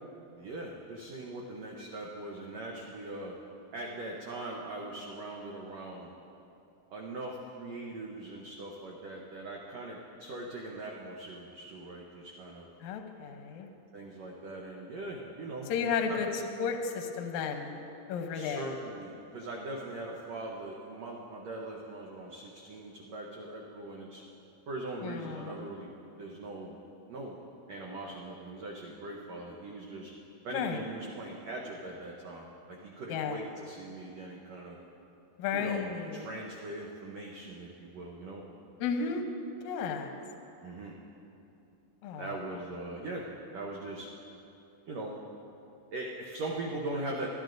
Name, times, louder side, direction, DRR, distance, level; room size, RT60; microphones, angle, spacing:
voice 1, 0.3-3.3 3.7-6.1 6.9-12.7 13.9-16.2 18.3-24.2 24.7-26.8 27.1-27.4 27.7-30.1 30.4-34.8 35.5-35.9 36.1-38.4 40.6-40.9 42.2-43.2 43.5-44.1 44.9-45.2 45.9-47.3, right 2 dB, 80° right, -2 dB, 1.5 m, -41 dB
voice 2, 12.8-13.7 15.7-16.3 16.6-17.8 18.1-18.7 25.0-25.7 30.5-30.8 33.1-33.4 35.4-36.2 38.8-39.2 39.6-40.1 42.0-42.3, left 6 dB, 70° left, 4 dB, 1.8 m, -33 dB
26.0 x 11.0 x 2.6 m, 2.9 s
omnidirectional pair, 4.4 m